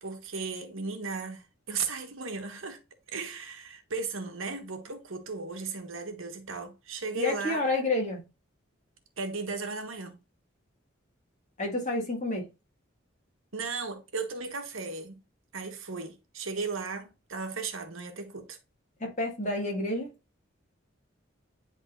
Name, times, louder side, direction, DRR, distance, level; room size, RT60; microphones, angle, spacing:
voice 1, 0.0-2.8 3.1-7.6 9.2-10.2 13.5-15.2 15.5-18.6, right 4 dB, 85° right, 1.4 m, -36 dB
voice 2, 7.2-8.2 11.6-12.5 19.0-20.1, left 2 dB, 35° left, 1.9 m, -29 dB
10.0 x 3.7 x 2.5 m
head